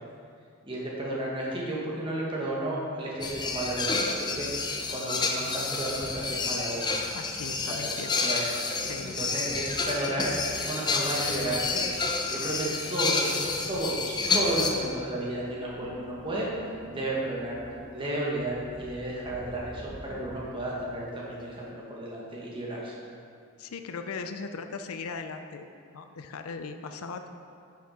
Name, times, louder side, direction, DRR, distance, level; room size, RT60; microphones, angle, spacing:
voice 1, 0.6-4.5 4.9-6.9 7.6-8.4 9.0-10.3 10.6-11.8 12.2-16.5 16.9-17.6 17.9-22.9, right 1 dB, 25° right, -4 dB, 1.4 m, -33 dB
sound 1, 3.2-14.8 19.0-19.1 19.5-19.6 20.8-20.9, left 4 dB, 20° left, 0.5 m, -30 dB
voice 2, 7.1-8.3 8.8-9.2 23.6-25.7 25.9-27.3, left 4 dB, 80° left, 7 dB, 0.5 m, -38 dB
sound 2, 15.4-20.4, right 1 dB, 45° right, 1.0 m, -47 dB
9.5 x 5.9 x 4.2 m, 2.4 s
head